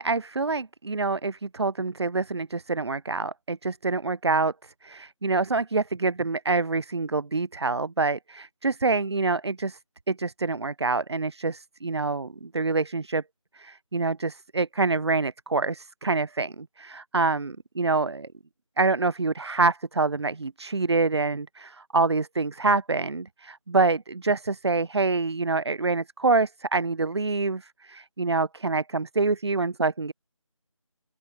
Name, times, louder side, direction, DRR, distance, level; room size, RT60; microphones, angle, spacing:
voice 1, 0.0-9.8 10.1-13.2 13.5-18.3 18.8-30.1, right 3 dB, 50° right, 0.4 m, -26 dB
open air
figure-of-eight pair, 170°, 17 cm